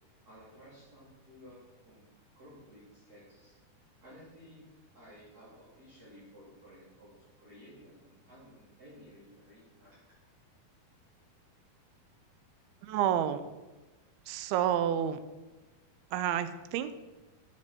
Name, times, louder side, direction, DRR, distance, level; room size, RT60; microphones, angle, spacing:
voice 1, 0.3-2.1 2.3-3.6 4.0-9.9, equal, 25° right, -9 dB, 3.6 m, -55 dB
voice 2, 12.8-13.4 14.3-15.2 16.1-16.9, right 10 dB, 85° right, 11 dB, 2.5 m, -29 dB
14.5 x 7.6 x 4.5 m, 1.1 s
omnidirectional pair, 4.4 m